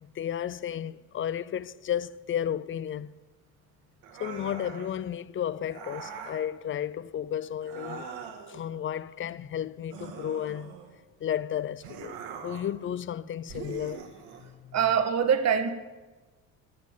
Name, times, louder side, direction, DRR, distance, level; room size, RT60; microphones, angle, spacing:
voice 1, 0.0-3.1 4.2-8.1 8.5-10.8 11.2-12.2 12.4-14.0 14.4-14.8, left 10 dB, 35° left, 0.5 m, -33 dB
sound 1, 4.0-5.0 5.7-6.5 7.6-8.6 9.9-11.0 11.8-12.8 13.5-14.5, right 6 dB, 90° right, 1.8 m, -42 dB
voice 2, 14.7-15.7, right 7 dB, 45° right, 1.5 m, -23 dB
14.0 x 7.3 x 9.0 m
cardioid pair, 100°, 37 cm